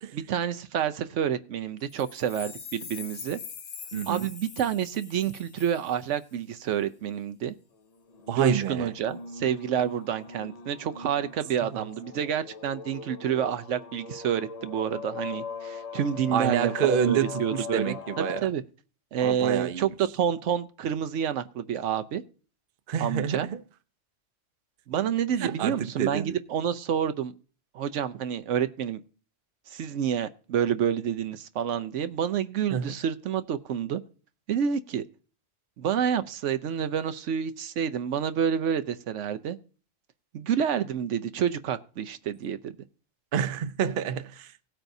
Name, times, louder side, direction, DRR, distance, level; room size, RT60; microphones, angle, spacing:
voice 1, 0.1-3.4 4.1-7.6 8.3-18.6 19.1-22.2 23.0-23.5 24.9-27.3 27.7-29.0 29.7-34.0 34.5-35.0 35.8-39.6 40.3-42.7, right 8 dB, 80° right, 1.0 m, -28 dB
sound 1, 1.9-6.3, left 6 dB, 80° left, 1.3 m, -43 dB
voice 2, 3.9-4.3 8.3-8.9 11.7-11.8 16.3-18.5 19.2-19.9 22.9-23.6 25.4-26.4 32.7-32.9 43.3-44.5, right 8 dB, 55° right, 0.8 m, -28 dB
sound 2, 8.1-18.4, left 5 dB, 40° left, 0.6 m, -40 dB
17.0 x 8.9 x 2.7 m
omnidirectional pair, 1.2 m